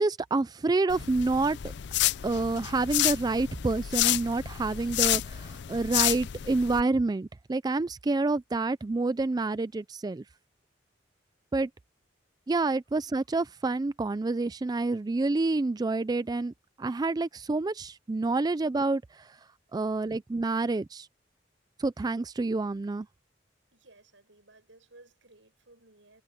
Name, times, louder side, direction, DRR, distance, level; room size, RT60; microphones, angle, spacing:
voice 1, 0.0-1.6 2.2-10.2 11.5-11.7 12.5-16.5 16.8-19.3 19.7-21.1 21.8-23.1, right 3 dB, 20° right, 0.3 m, -28 dB
sound 1, 0.9-6.8, left 13 dB, 65° left, 0.5 m, -30 dB
voice 2, 23.7-26.2, right 2 dB, 90° right, 7.3 m, -57 dB
head